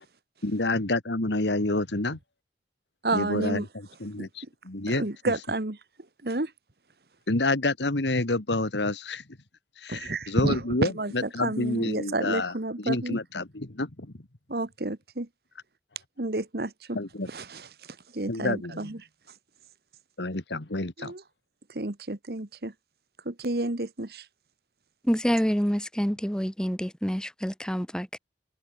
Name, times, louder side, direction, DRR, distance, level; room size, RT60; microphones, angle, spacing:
voice 1, 0.4-2.2 3.1-5.1 7.3-9.2 9.8-14.1 16.9-17.3 18.3-18.9 20.2-21.1, left 2 dB, 85° left, 2.0 m, -28 dB
voice 2, 3.0-4.3 4.9-5.8 6.2-6.5 9.9-13.2 14.5-15.3 16.2-17.0 17.2-19.1 21.0-21.2 21.7-22.7 23.2-24.3, right 2 dB, 60° right, 1.5 m, -31 dB
voice 3, 25.0-28.2, equal, 5° left, 1.1 m, -27 dB
head